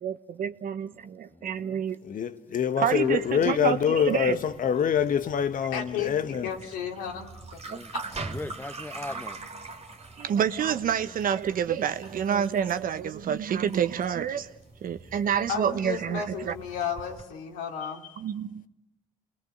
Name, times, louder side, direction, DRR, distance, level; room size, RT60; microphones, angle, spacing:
voice 1, 0.0-2.0 2.8-3.8 4.0-4.4 7.7-7.8 10.2-14.5 14.8-16.5 18.2-18.6, right 8 dB, 60° right, 1.2 m, -28 dB
voice 2, 1.3-1.8 7.7-7.9 8.2-9.4, left 2 dB, 10° left, 1.0 m, -40 dB
voice 3, 2.0-6.5, left 8 dB, 55° left, 1.3 m, -25 dB
sound 1, 3.0-17.2, right 3 dB, 40° right, 2.7 m, -44 dB
voice 4, 5.7-6.1 6.4-7.3 7.5-7.6 7.9-8.0 15.5-18.0, left 7 dB, 85° left, 2.8 m, -33 dB
28.5 x 20.0 x 7.9 m
supercardioid pair, 55°, 16 cm